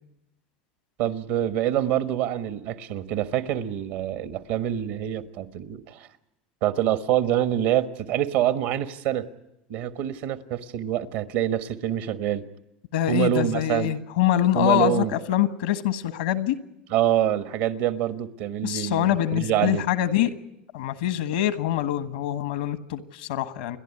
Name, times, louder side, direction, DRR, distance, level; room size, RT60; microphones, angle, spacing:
voice 1, 1.0-6.1 6.6-9.3 9.7-12.4 13.1-13.9 14.5-15.1 16.9-19.8, right 11 dB, 70° right, 10 dB, 1.4 m, -26 dB
voice 2, 12.9-16.6 18.6-20.3 20.7-23.8, left 12 dB, 85° left, 11 dB, 1.4 m, -24 dB
29.0 x 11.0 x 9.9 m, 0.88 s
hypercardioid pair, 95°, 5 cm